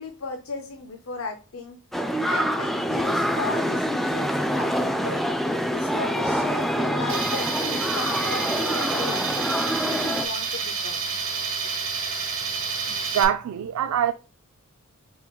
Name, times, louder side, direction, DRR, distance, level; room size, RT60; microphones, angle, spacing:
voice 1, 0.0-1.8 2.3-5.2 5.7-11.0, left 3 dB, 65° left, 0.6 m, -35 dB
sound 1, 1.9-10.3, equal, ahead, 0.3 m, -26 dB
Tools, 7.1-13.2, right 5 dB, 65° right, 0.9 m, -29 dB
voice 2, 13.1-14.1, right 9 dB, 80° right, 0.3 m, -23 dB
4.4 x 3.7 x 2.3 m
head